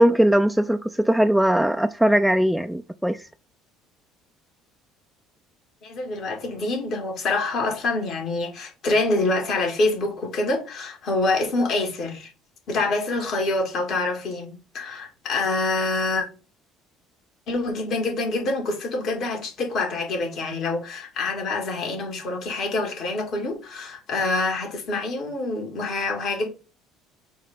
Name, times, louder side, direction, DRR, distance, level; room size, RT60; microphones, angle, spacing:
voice 1, 0.0-3.3, right 1 dB, ahead, 0.5 m, -20 dB
voice 2, 5.8-12.3 12.7-16.3 17.5-26.5, left 2 dB, 50° left, 2.2 m, -26 dB
7.6 x 2.8 x 5.1 m
hypercardioid pair, 60°, 0 cm